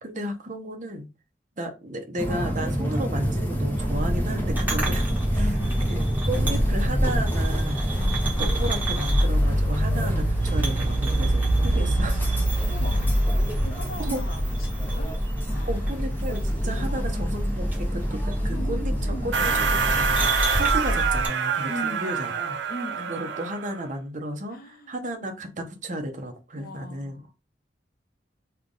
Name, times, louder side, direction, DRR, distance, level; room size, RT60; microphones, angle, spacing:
voice 1, 0.0-1.1 1.6-5.1 5.3-5.5 5.9-7.8 8.4-12.4 14.0-14.2 15.7-20.1 20.5-22.6 23.1-27.2, right 1 dB, 45° right, 0.8 m, -33 dB
sound 1, 2.2-20.3, equal, 10° left, 0.7 m, -30 dB
sound 2, 3.8-21.3, equal, 10° right, 1.3 m, -25 dB
voice 2, 5.4-5.9 7.9-8.5 11.7-12.2 12.7-15.2 15.5-16.0 16.7-17.4 18.4-19.6 21.7-22.4 22.7-23.4 24.5-24.9 26.5-27.3, left 1 dB, 55° left, 0.8 m, -39 dB
sound 3, 19.3-23.8, right 6 dB, 75° right, 0.5 m, -26 dB
3.4 x 2.3 x 3.8 m
head